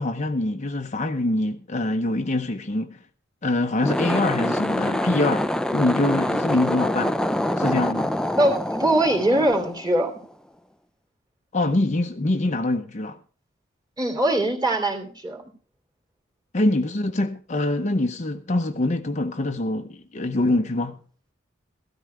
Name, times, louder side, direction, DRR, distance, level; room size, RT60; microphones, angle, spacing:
voice 1, 0.0-3.0 3.4-7.1 7.6-8.1 11.5-13.2 16.5-21.0, left 2 dB, 35° left, 0.8 m, -24 dB
sound 1, 3.7-10.2, left 1 dB, 5° left, 0.5 m, -25 dB
voice 2, 8.4-10.1 14.0-15.4, right 1 dB, 20° right, 2.8 m, -22 dB
15.5 x 13.0 x 3.3 m
head